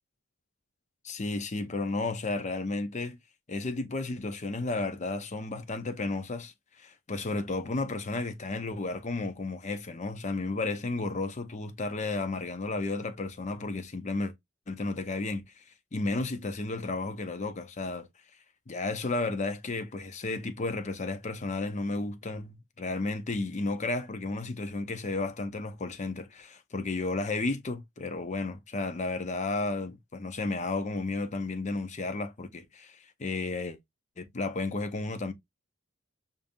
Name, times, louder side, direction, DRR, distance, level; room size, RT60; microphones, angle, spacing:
voice 1, 1.0-3.2 3.5-14.3 14.7-15.6 15.9-18.1 18.7-33.8 34.2-35.3, left 3 dB, 35° left, 0.6 m, -33 dB
5.1 x 2.6 x 2.6 m
head